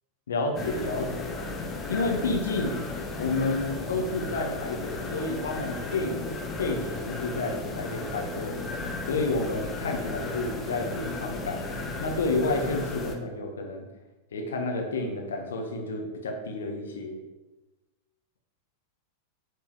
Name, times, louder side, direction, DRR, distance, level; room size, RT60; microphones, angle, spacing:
voice 1, 0.3-1.3 1.9-2.8 3.2-8.6 9.1-11.6 12.0-13.9 14.3-17.2, left 3 dB, 65° left, 2 dB, 1.5 m, -30 dB
sound 1, 0.6-13.2, left 3 dB, 20° left, 1.0 m, -35 dB
9.2 x 4.5 x 4.8 m, 1.1 s
figure-of-eight pair, 90°, 0 cm